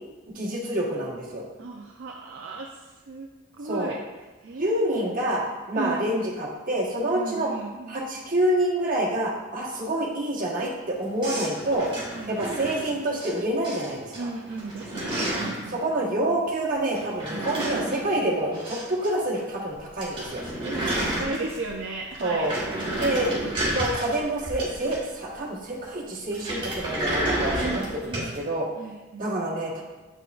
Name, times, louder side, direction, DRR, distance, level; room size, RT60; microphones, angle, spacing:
voice 1, 0.3-1.4 3.6-4.0 4.6-7.5 7.9-11.9 12.3-14.3 15.7-20.4 22.2-22.5 22.9-23.3 23.7-28.7 29.2-29.8, right 1 dB, 40° right, -4 dB, 1.3 m, -27 dB
voice 2, 1.6-3.3 3.6-4.0 4.4-5.2 5.8-6.1 7.1-8.0 12.1-12.5 14.1-15.8 17.3-17.5 20.6-23.5 27.6-28.4 28.8-29.3, right 3 dB, 60° right, -1 dB, 0.5 m, -36 dB
sound 1, 11.2-13.3 13.6-14.2 14.5-15.7 16.9-19.1 19.3-19.4 19.7-19.8 20.0-21.8 22.1-25.2 26.3-28.4, right 1 dB, 25° right, 2.1 m, -30 dB
8.1 x 5.8 x 2.5 m, 1.2 s
head